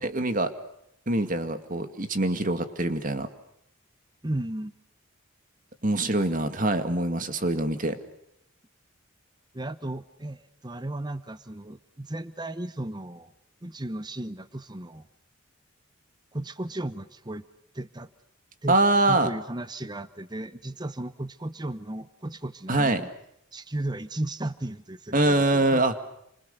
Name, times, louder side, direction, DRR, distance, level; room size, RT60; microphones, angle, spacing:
voice 1, 0.0-0.5 1.1-3.3 5.8-8.0 18.7-19.3 22.7-23.0 25.1-25.9, right 2 dB, 40° right, 9 dB, 2.2 m, -24 dB
voice 2, 4.2-4.7 9.5-13.3 13.6-15.0 16.3-17.4 17.7-18.1 18.6-18.8 19.1-23.1 23.5-25.8, right 1 dB, 20° right, 13 dB, 1.0 m, -35 dB
29.5 x 27.0 x 6.7 m, 0.77 s
head